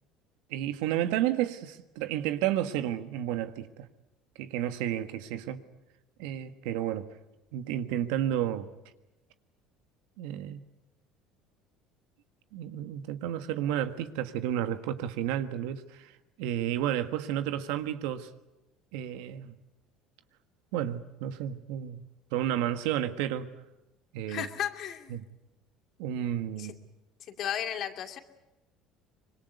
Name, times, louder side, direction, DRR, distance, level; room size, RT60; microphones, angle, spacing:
voice 1, 0.5-3.9 4.4-5.6 6.2-7.1 7.5-8.7 10.2-10.6 12.5-16.1 16.4-18.3 18.9-19.5 20.7-22.0 22.3-23.5 24.1-24.5 25.1-25.2 26.0-26.8, right 11 dB, 75° right, 1.5 m, -31 dB
voice 2, 24.3-25.2 26.6-26.7 27.3-28.2, left 10 dB, 55° left, 2.5 m, -34 dB
25.5 x 21.5 x 8.2 m
supercardioid pair, 80°, 0 cm